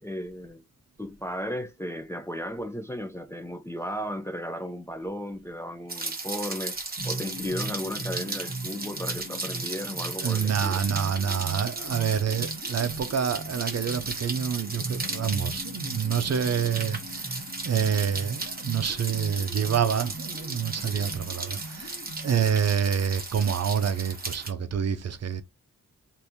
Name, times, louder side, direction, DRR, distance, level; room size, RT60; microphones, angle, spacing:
voice 1, 0.0-0.6 1.0-6.8 7.0-10.8, equal, 10° left, 0.3 m, -35 dB
Rain, 5.9-24.5, right 3 dB, 30° right, 1.0 m, -35 dB
sound 1, 7.0-22.5, right 1 dB, 50° left, 1.5 m, -40 dB
voice 2, 10.2-25.4, right 7 dB, 55° right, 0.5 m, -27 dB
3.4 x 2.6 x 2.7 m
wide cardioid pair, 80°, 32 cm